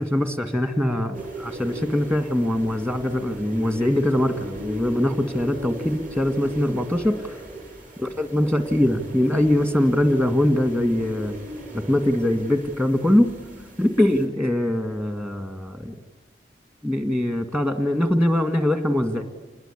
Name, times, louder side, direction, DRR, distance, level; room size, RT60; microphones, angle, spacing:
voice 1, 0.0-7.3 8.0-11.3 11.7-13.3 13.8-16.0 16.8-19.2, left 1 dB, 15° right, 8 dB, 1.9 m, -22 dB
sound 1, 1.1-14.3, right 1 dB, 50° right, 5.9 m, -38 dB
27.5 x 21.0 x 10.0 m, 1.3 s
head